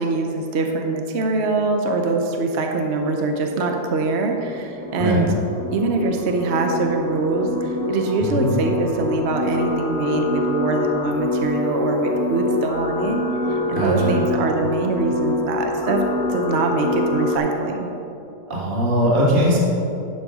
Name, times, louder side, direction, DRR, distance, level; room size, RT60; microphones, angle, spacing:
voice 1, 0.0-5.3 5.7-13.2 13.5-17.9, right 3 dB, 55° right, 3 dB, 0.8 m, -23 dB
sound 1, 2.8-17.4, left 2 dB, 5° left, 1.0 m, -26 dB
voice 2, 13.7-14.2 18.5-19.6, right 1 dB, 30° right, -5 dB, 1.6 m, -20 dB
11.0 x 4.0 x 6.0 m, 2.9 s
omnidirectional pair, 1.8 m